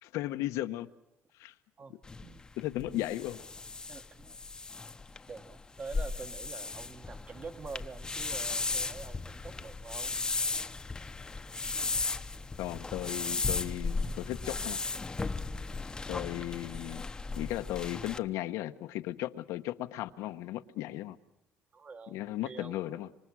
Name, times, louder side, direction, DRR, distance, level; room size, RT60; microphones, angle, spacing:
voice 1, 0.0-0.9 1.4-1.5 2.6-3.4 12.6-14.8 16.1-17.0 17.4-21.2 22.1-23.1, left 15 dB, 85° left, 1.1 m, -36 dB
voice 2, 1.8-2.4 2.8-3.1 3.9-4.4 5.3-10.2 11.6-11.9 21.7-22.2 22.4-23.2, right 4 dB, 30° right, 1.3 m, -46 dB
sound 1, 2.0-18.2, left 3 dB, 15° left, 0.8 m, -36 dB
26.0 x 25.5 x 6.3 m
cardioid pair, 155°, 5 cm